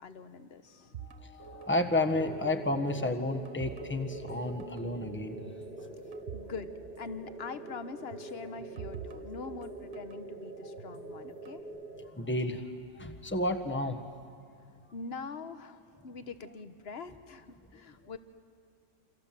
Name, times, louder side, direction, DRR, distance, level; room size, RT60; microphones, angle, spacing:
voice 1, 0.0-0.9 6.3-6.7 7.0-11.6 14.9-18.2, left 4 dB, 55° left, 11 dB, 1.4 m, -43 dB
sound 1, 0.9-2.5 2.8-4.4 4.6-4.8 5.4-6.6 6.8-6.9 8.1-10.2 10.8-11.6, right 8 dB, 70° right, 1.5 m, -47 dB
voice 2, 1.0-5.4 12.2-12.6 12.9-14.0, left 2 dB, 10° left, 8 dB, 1.3 m, -31 dB
sound 2, 2.2-12.1, right 2 dB, 45° right, 2.4 m, -44 dB
28.0 x 27.5 x 7.6 m, 2.4 s
omnidirectional pair, 1.3 m